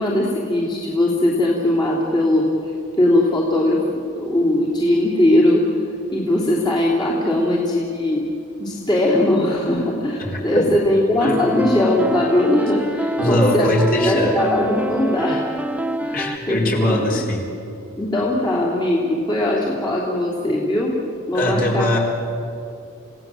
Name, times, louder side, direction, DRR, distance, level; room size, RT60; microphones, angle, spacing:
voice 1, 0.0-2.4 3.0-5.6 6.1-8.2 8.6-13.7 14.0-15.5 16.0-16.2 16.5-17.2 18.0-21.0 21.3-22.0, left 1 dB, 20° left, -5 dB, 3.1 m, -20 dB
voice 2, 10.2-10.7 11.2-11.5 13.2-14.3 16.1-17.4 21.3-22.0, equal, 40° left, -1 dB, 4.3 m, -21 dB
sound 1, 11.2-16.4, right 1 dB, 5° right, 0.7 m, -26 dB
30.0 x 17.5 x 7.6 m, 2.7 s
head